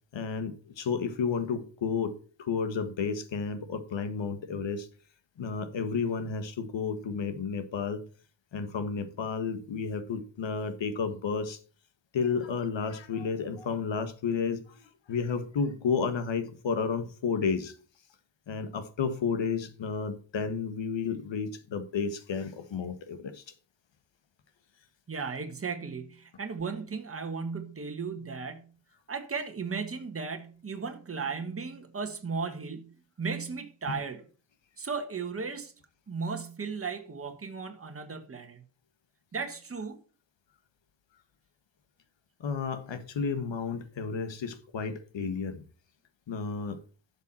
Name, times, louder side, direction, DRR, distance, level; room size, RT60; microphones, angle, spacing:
voice 1, 0.1-4.9 5.4-8.0 8.5-11.6 12.1-17.7 18.5-23.4 33.9-34.0 42.4-45.6 46.3-46.8, left 5 dB, 85° left, 1.6 m, -32 dB
voice 2, 25.1-28.7 29.1-34.2 34.8-35.7 36.1-38.6 39.3-40.0, right 5 dB, 30° right, 1.6 m, -36 dB
11.5 x 7.2 x 4.4 m
wide cardioid pair, 155°, 44 cm